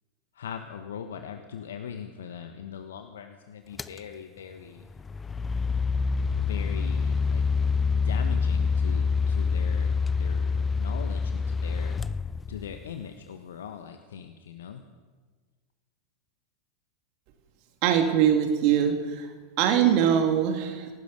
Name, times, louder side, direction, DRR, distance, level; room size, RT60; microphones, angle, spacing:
voice 1, 0.3-4.9 6.3-7.4 7.9-12.0 12.5-14.8, left 7 dB, 60° left, 6 dB, 1.5 m, -41 dB
sound 1, 3.8-4.0 4.9-12.9, left 5 dB, 15° left, 0.7 m, -26 dB
voice 2, 17.8-20.9, right 9 dB, 45° right, 4 dB, 2.5 m, -23 dB
27.5 x 18.0 x 5.3 m, 1.4 s
figure-of-eight pair, 90°, 0 cm